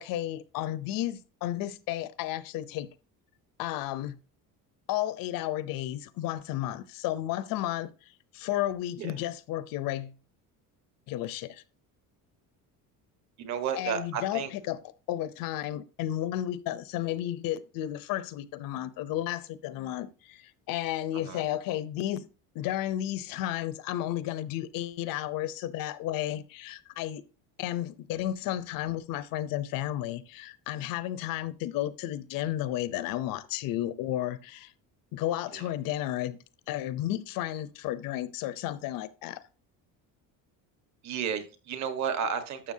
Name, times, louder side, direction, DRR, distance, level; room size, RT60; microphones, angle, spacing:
voice 1, 0.0-2.9 3.6-4.2 4.9-10.2 11.1-11.6 13.8-14.8 15.1-22.3 22.5-27.2 27.6-34.7 35.1-36.4 36.7-39.4, left 13 dB, 60° left, 0.8 m, -33 dB
voice 2, 13.4-14.5 21.1-21.4 35.5-35.7 41.0-42.7, right 7 dB, 45° right, 1.5 m, -32 dB
12.5 x 6.9 x 2.8 m
cardioid pair, 165°, 38 cm